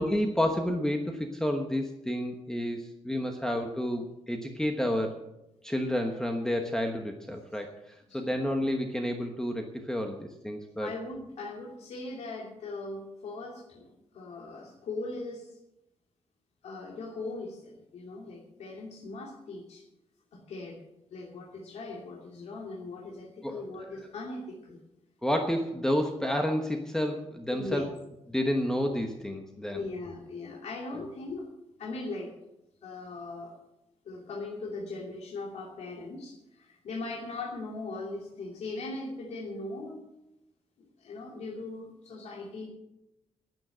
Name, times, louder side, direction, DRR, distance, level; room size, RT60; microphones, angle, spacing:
voice 1, 0.0-5.2 5.6-7.7 8.1-10.9 23.4-23.6 25.2-27.8 28.3-29.8 30.9-31.0, equal, 5° left, 3 dB, 1.1 m, -30 dB
voice 2, 10.8-15.6 16.6-19.8 20.3-20.8 21.1-24.8 27.5-27.9 29.7-31.5 31.8-32.3 32.8-33.5 34.0-40.0 41.0-42.7, left 3 dB, 70° left, -2 dB, 2.7 m, -39 dB
11.0 x 9.2 x 9.0 m, 0.90 s
wide cardioid pair, 165°, 11 cm